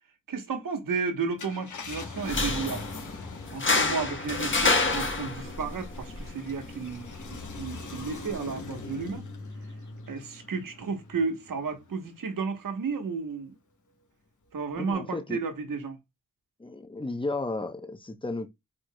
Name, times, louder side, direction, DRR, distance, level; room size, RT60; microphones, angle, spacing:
voice 1, 0.3-2.8 3.5-9.2 10.1-13.5 14.5-16.0, right 5 dB, 85° right, 1.2 m, -33 dB
Car, 1.2-12.1 12.6-12.7 14.7-14.9, left 3 dB, 65° left, 1.4 m, -43 dB
sound 1, 2.2-9.2, left 3 dB, 35° left, 1.3 m, -30 dB
voice 2, 14.8-15.4 16.6-18.5, left 2 dB, 15° left, 0.9 m, -33 dB
4.7 x 4.5 x 2.3 m
wide cardioid pair, 80°, 32 cm